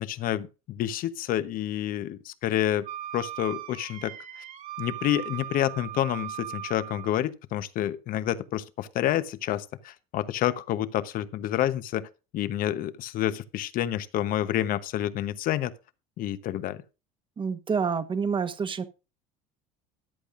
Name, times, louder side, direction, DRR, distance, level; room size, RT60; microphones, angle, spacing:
voice 1, 0.0-2.9 3.1-4.4 4.8-15.7 16.2-16.8, left 12 dB, 55° left, 1.0 m, -29 dB
Wind instrument woodwind instrument, 2.8-7.2, right 12 dB, 55° right, 3.1 m, -38 dB
voice 2, 17.4-18.8, right 6 dB, 30° right, 1.3 m, -28 dB
14.0 x 10.0 x 2.6 m
supercardioid pair, 100°, 17 cm